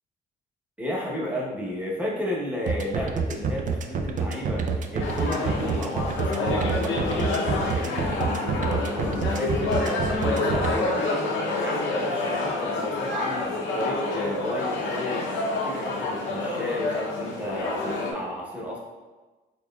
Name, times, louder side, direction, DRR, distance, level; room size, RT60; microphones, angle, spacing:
voice 1, 0.8-9.7 10.1-11.3 11.6-18.8, left 1 dB, 5° right, -4 dB, 0.9 m, -33 dB
sound 1, 2.7-10.7, right 5 dB, 40° right, 0.4 m, -27 dB
sound 2, 5.0-18.1, left 2 dB, 80° left, 0.7 m, -28 dB
4.1 x 3.5 x 2.3 m, 1.2 s
cardioid pair, 90°, 20 cm